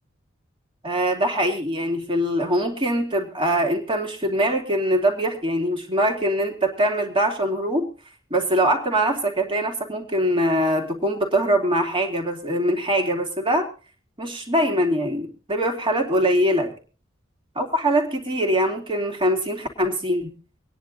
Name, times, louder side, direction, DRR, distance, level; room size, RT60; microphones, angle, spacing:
voice 1, 0.8-7.9 8.3-13.7 14.2-16.7 17.6-20.3, right 1 dB, 25° right, 2 dB, 2.5 m, -23 dB
25.5 x 10.0 x 2.6 m, 0.36 s
head